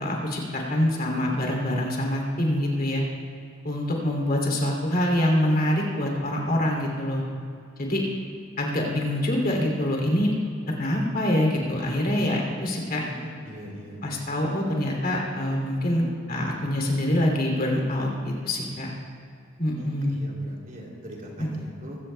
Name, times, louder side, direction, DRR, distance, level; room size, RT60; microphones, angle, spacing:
voice 1, 0.0-3.0 3.6-7.2 7.8-8.0 8.6-10.3 10.8-13.0 14.0-18.9 19.6-20.2 21.4-21.5, left 1 dB, 45° left, -1 dB, 2.8 m, -25 dB
voice 2, 13.0-14.1 19.8-22.0, equal, 45° right, -2 dB, 2.8 m, -40 dB
22.5 x 15.5 x 2.3 m, 2.5 s
head